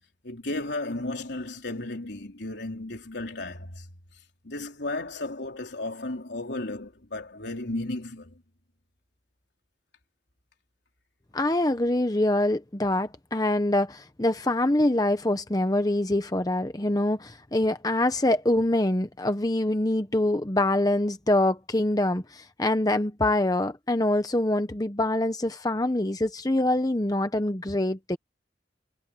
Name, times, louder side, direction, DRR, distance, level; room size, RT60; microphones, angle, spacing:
voice 1, 0.2-3.9 4.4-8.4, left 2 dB, 70° left, 3.7 m, -34 dB
voice 2, 11.3-28.2, left 1 dB, 20° left, 0.9 m, -25 dB
head